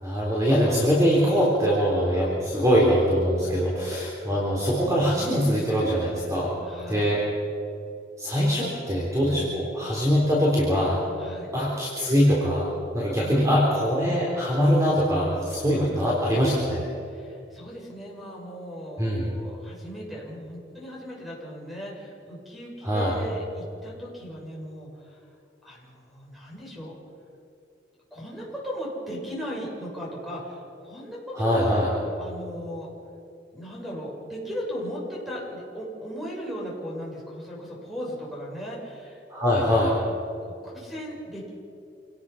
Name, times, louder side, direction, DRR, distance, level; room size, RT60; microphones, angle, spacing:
voice 1, 0.0-6.5 6.9-7.2 8.2-11.0 11.5-16.9 19.0-19.2 22.8-23.1 31.3-31.9 39.3-39.9, equal, 20° right, -5 dB, 3.9 m, -23 dB
voice 2, 6.6-7.1 9.3-9.6 11.2-11.5 13.2-13.6 17.1-25.2 25.6-27.0 28.1-31.8 32.2-32.9 33.5-39.2 40.4-41.5, equal, ahead, -4 dB, 7.0 m, -37 dB
27.5 x 18.5 x 5.9 m, 2.7 s
head